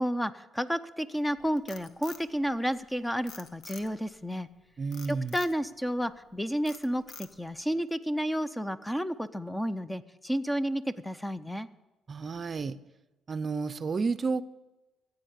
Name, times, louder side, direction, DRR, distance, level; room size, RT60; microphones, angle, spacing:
voice 1, 0.0-4.5 5.1-11.7, equal, 5° left, 13 dB, 0.5 m, -31 dB
Frog, 1.4-2.9 3.3-4.1 4.9-5.6 6.1-6.3 6.7-7.6, left 6 dB, 70° left, 1.2 m, -47 dB
voice 2, 4.8-5.4 12.1-12.7 13.3-14.4, right 4 dB, 35° right, 16 dB, 0.6 m, -31 dB
14.5 x 8.5 x 8.2 m, 1.1 s
cardioid pair, 120°, 0 cm